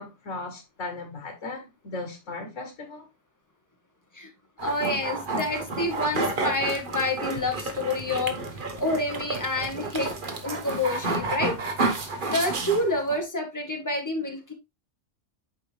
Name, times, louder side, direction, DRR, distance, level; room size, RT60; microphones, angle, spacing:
voice 1, 0.0-3.1, left 3 dB, 90° left, 1.7 m, -37 dB
voice 2, 4.6-8.3 8.8-11.5 12.3-14.5, left 2 dB, 15° left, 1.7 m, -28 dB
sound 1, 4.6-13.2, right 3 dB, 45° right, 1.3 m, -31 dB
8.5 x 4.9 x 3.3 m
omnidirectional pair, 1.2 m